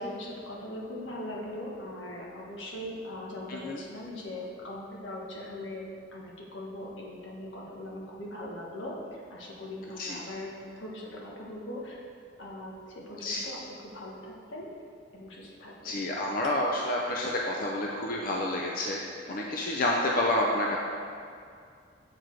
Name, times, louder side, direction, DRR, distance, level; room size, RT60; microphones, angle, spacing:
voice 1, 0.0-5.8 6.1-12.0 12.4-13.6 13.9-14.7 15.1-16.0, left 1 dB, 85° left, -3 dB, 1.4 m, -40 dB
voice 2, 15.8-19.0 19.3-20.8, left 1 dB, 50° left, -2 dB, 0.6 m, -29 dB
7.6 x 4.8 x 4.6 m, 2.3 s
head